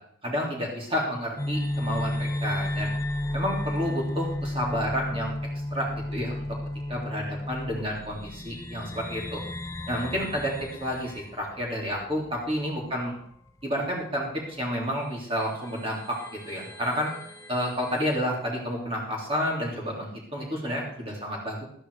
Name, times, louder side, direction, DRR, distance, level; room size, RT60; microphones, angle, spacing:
voice 1, 0.2-2.9 3.3-5.3 5.7-6.5 6.9-9.4 9.9-10.5 10.8-13.1 13.6-16.2 16.5-17.1 17.5-21.6, equal, 30° right, -2 dB, 3.7 m, -30 dB
sound 1, 1.4-13.3 13.6-13.7 14.7-14.8 15.3-18.4, left 1 dB, 15° left, 0.9 m, -34 dB
12.5 x 10.0 x 5.0 m, 0.68 s
head